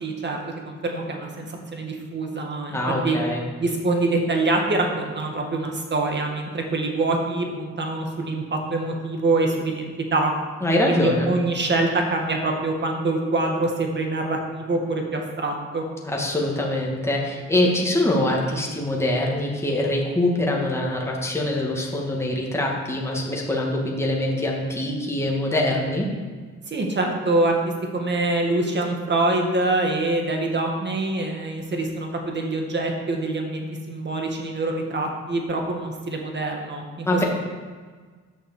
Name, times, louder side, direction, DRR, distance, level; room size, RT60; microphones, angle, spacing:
voice 1, 0.0-3.2 3.6-10.3 10.9-15.8 26.6-27.6 27.9-37.2, right 2 dB, 35° right, 2 dB, 2.0 m, -25 dB
voice 2, 2.7-3.4 10.6-11.3 16.0-26.1 37.1-37.2, left 1 dB, 10° left, -2 dB, 2.1 m, -24 dB
8.9 x 6.1 x 6.7 m, 1.5 s
cardioid pair, 90°, 30 cm